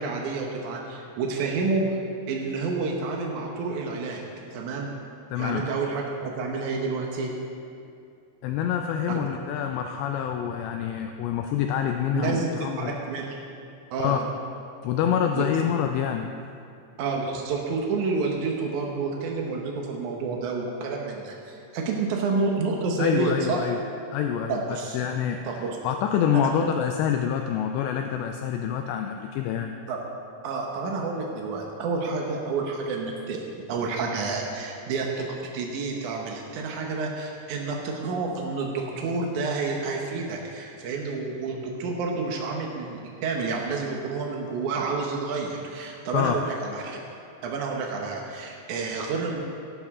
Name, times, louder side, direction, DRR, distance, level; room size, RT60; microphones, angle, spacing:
voice 1, 0.0-1.9 2.3-4.2 4.5-4.9 5.4-7.3 9.1-9.2 12.1-13.3 13.9-14.2 15.3-15.5 17.0-23.6 24.5-25.0 25.4-25.8 26.3-26.7 29.9-30.0 30.4-33.4 33.7-47.0 47.4-49.4, right 4 dB, 85° right, 0 dB, 1.7 m, -29 dB
voice 2, 5.3-5.6 8.4-12.9 14.0-14.2 14.8-16.3 23.0-23.8 24.1-29.7 46.1-46.4, left 9 dB, 80° left, 5 dB, 2.6 m, -27 dB
16.5 x 11.5 x 3.7 m, 2.5 s
omnidirectional pair, 5.2 m